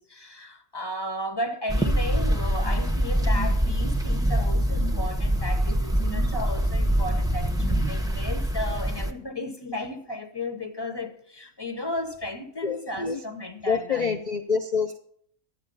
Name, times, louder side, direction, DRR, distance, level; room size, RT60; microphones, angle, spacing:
voice 1, 0.0-14.2, left 1 dB, 20° left, 0.9 m, -34 dB
sound 1, 1.7-9.1, equal, 5° right, 0.5 m, -24 dB
voice 2, 12.6-13.2 13.7-15.0, left 5 dB, 70° left, 0.4 m, -27 dB
12.0 x 8.3 x 5.4 m
omnidirectional pair, 1.5 m